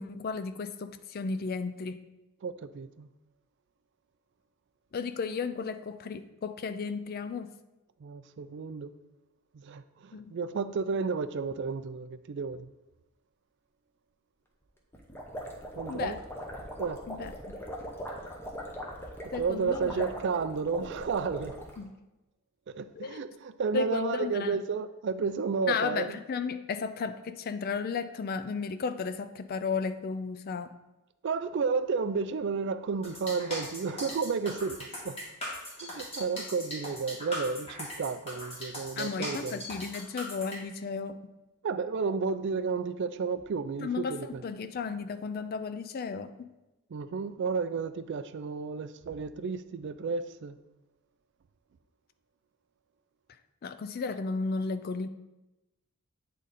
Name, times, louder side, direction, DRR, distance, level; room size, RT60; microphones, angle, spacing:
voice 1, 0.0-2.0 4.9-7.5 10.1-10.3 15.9-16.2 17.1-17.6 19.3-20.1 21.8-21.9 23.0-23.2 23.7-24.6 25.7-30.8 39.0-41.2 43.8-46.5 53.6-55.1, left 5 dB, 45° left, 0.4 m, -34 dB
voice 2, 2.4-3.1 8.0-8.9 9.5-12.7 15.8-16.2 16.8-17.0 19.4-21.6 22.7-26.2 31.2-35.2 35.8-39.6 41.6-44.4 46.9-50.6, right 5 dB, 55° right, 0.3 m, -32 dB
sound 1, 14.9-21.8, equal, 10° left, 0.7 m, -40 dB
sound 2, 33.0-40.6, left 1 dB, 25° left, 1.8 m, -39 dB
8.3 x 3.7 x 4.1 m
head